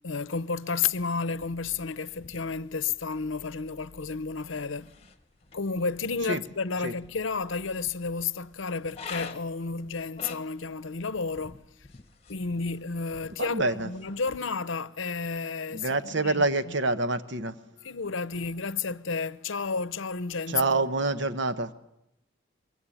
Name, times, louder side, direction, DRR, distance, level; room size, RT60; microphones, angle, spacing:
voice 1, 0.0-4.9 5.5-11.6 12.3-16.5 17.8-20.8, left 4 dB, 70° left, 0.8 m, -31 dB
sound 1, 1.3-14.4, left 4 dB, 30° left, 1.1 m, -48 dB
voice 2, 13.4-13.9 15.7-17.6 20.5-21.7, right 3 dB, 60° right, 1.1 m, -27 dB
24.0 x 23.0 x 8.6 m
head